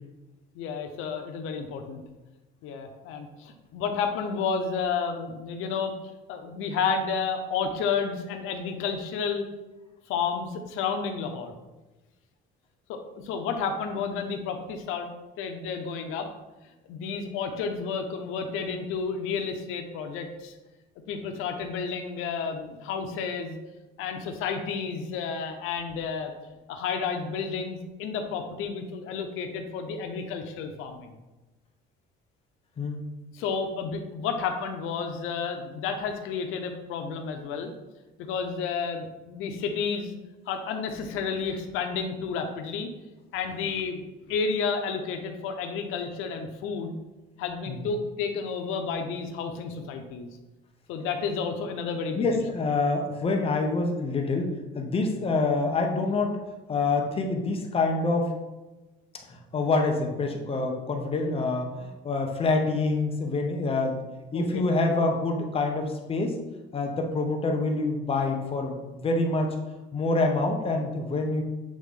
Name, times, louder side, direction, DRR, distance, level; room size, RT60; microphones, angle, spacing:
voice 1, 0.5-2.0 2.6-5.9 6.3-9.5 10.1-11.5 12.9-15.1 15.4-16.3 16.9-20.5 21.1-23.6 24.0-26.3 26.7-31.1 33.3-37.7 38.2-40.1 40.5-42.9 43.3-46.9 47.4-50.3 50.9-52.4 64.3-64.6, left 5 dB, 90° left, 5 dB, 0.7 m, -31 dB
voice 2, 52.1-56.4 56.7-58.3 59.3-64.0 64.3-66.4 66.7-69.5 69.9-71.4, left 3 dB, 30° left, 3 dB, 0.9 m, -26 dB
7.5 x 3.7 x 3.7 m, 1.1 s
cardioid pair, 145°, 21 cm